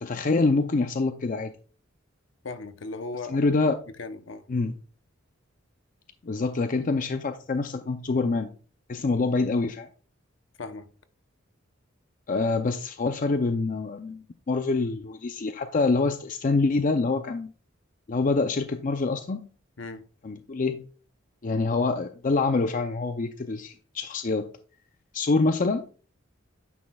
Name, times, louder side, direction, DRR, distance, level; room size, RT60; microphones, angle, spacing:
voice 1, 0.0-1.5 3.3-3.8 4.5-4.7 6.2-8.5 8.9-9.9 12.3-17.5 18.1-19.5 20.2-20.8 21.4-24.5 25.1-25.8, left 3 dB, 40° left, 0.5 m, -26 dB
voice 2, 2.4-3.5 3.9-4.5 10.6-10.9 19.8-20.0, left 3 dB, 70° left, 0.8 m, -37 dB
9.4 x 6.1 x 2.3 m
head